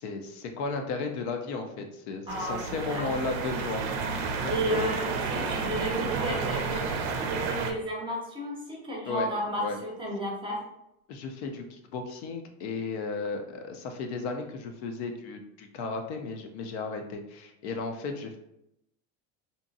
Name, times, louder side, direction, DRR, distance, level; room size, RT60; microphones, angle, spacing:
voice 1, 0.0-4.1 4.4-4.9 9.1-9.3 9.6-9.8 11.1-18.4, left 4 dB, 75° left, 4 dB, 0.6 m, -35 dB
voice 2, 2.3-2.6 2.9-3.1 4.5-10.6, right 1 dB, 15° right, -2 dB, 0.7 m, -32 dB
sound 1, 2.3-7.7, right 4 dB, 75° right, 0.5 m, -31 dB
2.7 x 2.2 x 2.6 m, 0.83 s
supercardioid pair, 115°, 34 cm